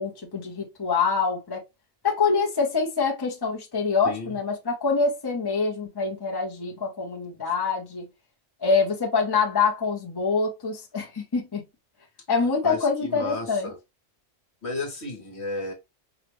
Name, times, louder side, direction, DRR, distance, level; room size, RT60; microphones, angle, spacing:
voice 1, 0.0-1.6 2.0-8.1 8.6-11.6 12.3-13.7, left 4 dB, 20° left, 0.9 m, -25 dB
voice 2, 4.0-4.4 12.6-13.8 14.6-15.7, left 2 dB, 55° left, 1.5 m, -33 dB
4.9 x 2.5 x 3.2 m
omnidirectional pair, 1.3 m